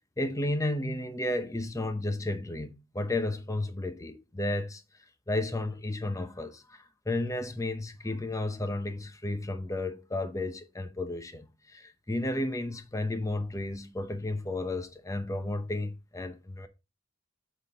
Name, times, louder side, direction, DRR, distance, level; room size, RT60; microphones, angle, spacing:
voice 1, 0.2-4.8 5.3-16.7, left 2 dB, 15° left, 0.9 m, -33 dB
8.2 x 4.2 x 4.2 m
head